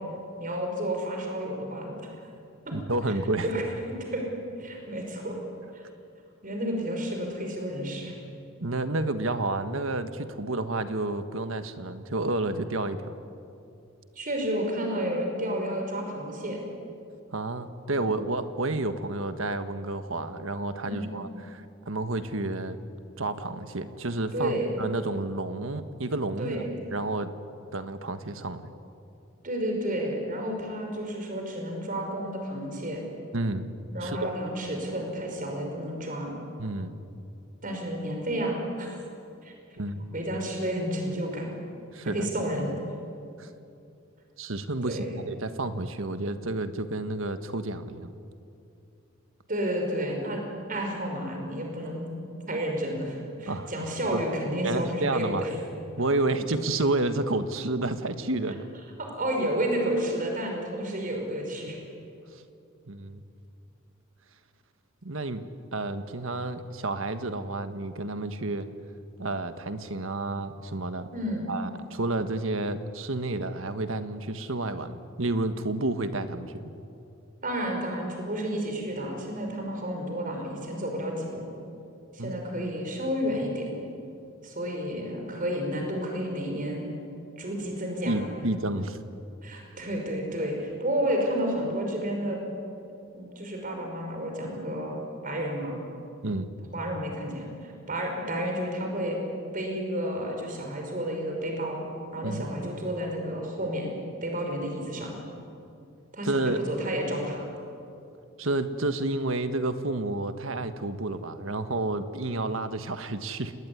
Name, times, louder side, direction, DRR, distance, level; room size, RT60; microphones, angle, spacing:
voice 1, 0.4-2.1 2.7-2.8 3.4-3.6 4.0-4.2 4.6-5.4 5.7-5.8 6.4-8.1 14.2-16.6 20.8-21.1 24.3-24.7 26.4-26.7 29.4-33.0 33.9-36.4 37.6-39.0 39.4-39.5 40.1-41.5 42.1-42.7 44.8-45.2 49.5-52.1 52.5-55.5 59.0-61.8 71.1-71.4 77.4-81.5 82.1-83.7 84.4-86.9 87.4-88.2 89.4-92.4 93.1-95.8 96.7-99.2 99.5-101.9 102.1-103.9 104.2-105.1 106.1-107.5, equal, 40° right, 2 dB, 5.4 m, -31 dB
voice 2, 2.7-3.5 8.6-13.2 17.3-22.8 23.2-26.6 26.9-27.3 27.7-28.7 33.3-33.7 34.0-34.3 36.6-36.9 39.8-40.0 41.9-42.3 43.4-43.5 44.4-48.1 53.5-53.7 54.1-54.2 54.6-55.5 56.0-58.7 62.3-62.4 62.9-63.2 65.0-65.5 65.7-68.7 69.2-71.1 71.5-76.7 82.2-82.3 88.1-89.0 96.2-96.5 102.2-102.5 106.2-106.6 108.4-113.5, right 2 dB, 70° right, 9 dB, 1.6 m, -30 dB
29.0 x 20.0 x 9.7 m, 2.6 s
head